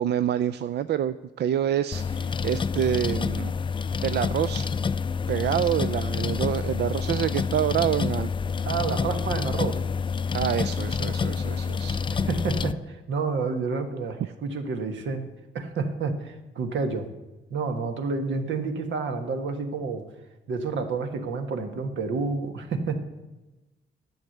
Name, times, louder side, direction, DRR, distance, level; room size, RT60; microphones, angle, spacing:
voice 1, 0.0-3.5 4.0-4.7 5.3-8.3 10.3-12.0, right 10 dB, 65° right, 12 dB, 0.4 m, -27 dB
sound 1, 1.9-12.7, left 5 dB, 25° left, 0.4 m, -28 dB
voice 2, 8.6-9.8 12.1-15.3 15.5-17.1 17.5-20.1 20.5-23.1, right 4 dB, 85° right, 6 dB, 1.6 m, -29 dB
11.0 x 7.2 x 7.9 m, 1.1 s
cardioid pair, 115°, 19 cm